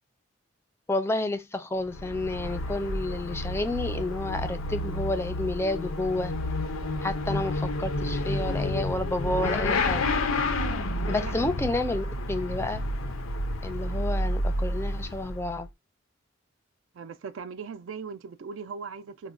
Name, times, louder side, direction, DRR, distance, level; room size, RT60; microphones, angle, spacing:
voice 1, 0.9-6.3 7.0-10.0 11.1-12.8 13.6-15.7, left 2 dB, 10° left, 0.3 m, -30 dB
Motorcycle / Accelerating revving vroom, 1.8-15.6, left 1 dB, 90° left, 0.6 m, -30 dB
voice 2, 16.9-19.3, right 5 dB, 70° right, 0.3 m, -39 dB
4.7 x 2.1 x 2.4 m
head